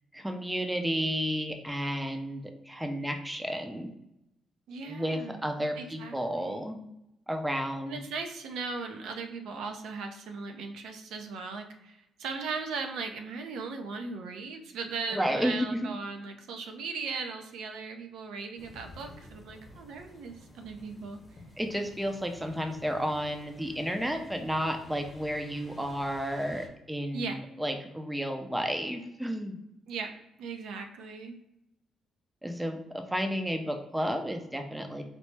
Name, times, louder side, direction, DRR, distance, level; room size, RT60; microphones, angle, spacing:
voice 1, 0.1-3.9 4.8-6.8 7.3-8.0 15.1-15.9 21.6-29.6 32.4-35.0, equal, 10° right, 5 dB, 0.5 m, -32 dB
voice 2, 4.7-5.4 5.8-6.6 7.9-21.2 27.1-27.4 29.9-30.1 30.4-31.3, right 4 dB, 80° right, 5 dB, 0.6 m, -38 dB
sound 1, 18.6-26.7, left 2 dB, 30° left, 0.9 m, -52 dB
4.4 x 2.0 x 3.2 m, 0.85 s
cardioid pair, 90°, 0 cm